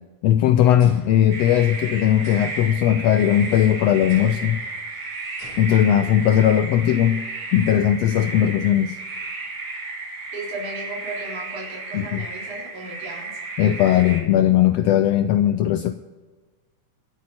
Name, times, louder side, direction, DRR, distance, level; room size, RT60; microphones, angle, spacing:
voice 1, 0.2-4.6 5.6-7.3 7.5-9.0 11.9-12.2 13.6-15.9, left 11 dB, 85° left, 10 dB, 1.5 m, -18 dB
sound 1, 0.8-1.8 2.2-3.5 4.1-4.6 5.4-6.0, left 1 dB, 70° left, 6.8 m, -45 dB
sound 2, 1.3-14.2, right 3 dB, 55° right, 3.7 m, -33 dB
voice 2, 10.3-13.4, right 2 dB, 80° right, -4 dB, 5.6 m, -35 dB
25.0 x 8.5 x 4.3 m, 1.3 s
omnidirectional pair, 3.4 m